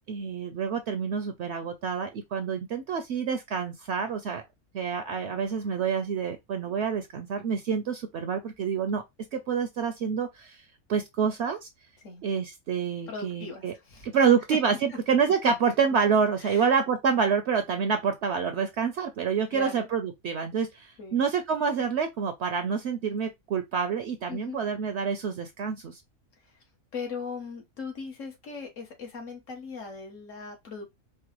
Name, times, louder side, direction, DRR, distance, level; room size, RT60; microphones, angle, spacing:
voice 1, 0.1-4.4 4.7-9.0 9.3-10.6 10.9-11.7 12.2-13.7 14.0-26.0, right 6 dB, 65° right, 0.8 m, -27 dB
voice 2, 13.1-14.2 14.5-14.6 14.9-15.0 15.4-15.5 16.4-16.7 19.5-19.9 21.0-21.2 24.3-24.6 26.9-30.8, left 4 dB, 70° left, 1.5 m, -38 dB
4.4 x 2.1 x 2.9 m
omnidirectional pair, 1.4 m